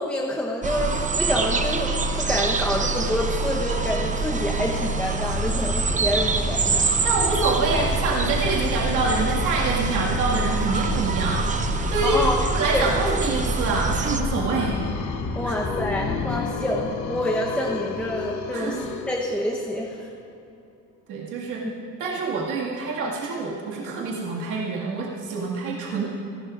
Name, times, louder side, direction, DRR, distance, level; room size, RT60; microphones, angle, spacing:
voice 1, 0.0-6.9 12.0-12.4 12.7-12.9 15.4-20.1, left 1 dB, 5° left, -3 dB, 1.0 m, -27 dB
sound 1, 0.6-14.2, right 3 dB, 25° right, 0.7 m, -25 dB
sound 2, 5.2-16.3, left 3 dB, 85° left, 3.9 m, -32 dB
voice 2, 7.0-11.5 11.9-12.2 12.5-14.8 15.5-15.6 18.5-18.8 21.1-21.7 22.0-26.1, right 3 dB, 85° right, -4 dB, 2.1 m, -26 dB
sound 3, 13.9-19.8, left 6 dB, 70° left, 1.0 m, -33 dB
28.5 x 12.0 x 2.6 m, 2.7 s
cardioid pair, 130°, 30 cm